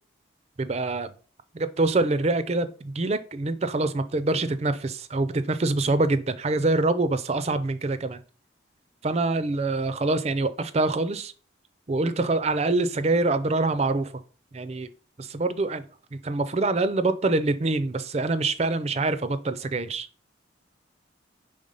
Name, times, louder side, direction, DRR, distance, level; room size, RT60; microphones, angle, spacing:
voice 1, 0.6-1.1 1.6-8.2 9.0-11.3 11.9-14.1 14.5-14.9 15.2-15.8 16.2-20.1, right 2 dB, 30° right, 12 dB, 0.4 m, -25 dB
5.1 x 3.6 x 5.4 m, 0.38 s
head